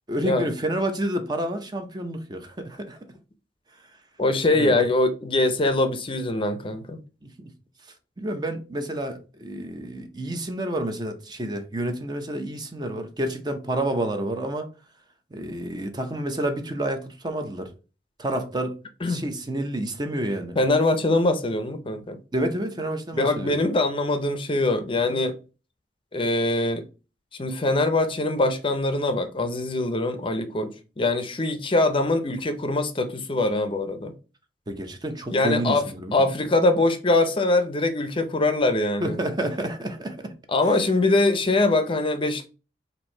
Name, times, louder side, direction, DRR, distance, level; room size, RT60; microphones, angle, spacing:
voice 1, 0.1-3.0 4.5-4.8 7.2-7.5 8.2-14.7 15.3-17.7 18.2-18.8 19.0-20.6 22.3-23.6 34.7-36.3 39.0-40.3, right 1 dB, 25° right, 0.6 m, -29 dB
voice 2, 4.2-7.0 19.0-19.2 20.6-22.2 23.1-25.3 26.1-26.8 27.4-34.1 35.3-35.8 36.1-39.2 40.5-42.5, left 2 dB, 30° left, 0.6 m, -23 dB
4.4 x 2.7 x 4.3 m
head